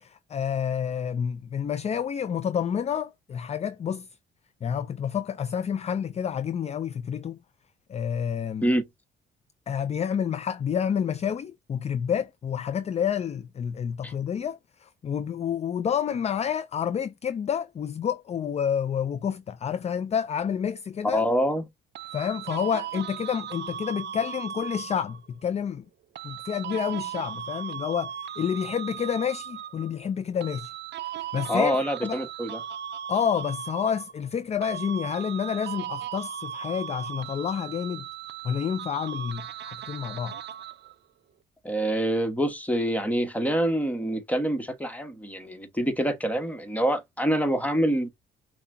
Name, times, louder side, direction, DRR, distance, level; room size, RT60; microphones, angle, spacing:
voice 1, 0.0-4.1 4.6-7.4 7.9-8.7 9.7-21.2 22.1-25.9 26.2-30.7 31.2-32.3 33.1-38.1 38.4-40.4, left 8 dB, 35° left, 0.4 m, -29 dB
voice 2, 21.1-21.6 31.5-32.6 41.6-48.1, equal, 5° left, 1.2 m, -26 dB
sound 1, 21.9-25.3 26.1-29.9 30.4-34.3 34.6-40.9, right 9 dB, 60° right, 0.5 m, -37 dB
5.6 x 2.3 x 2.7 m
cardioid pair, 90°, 20 cm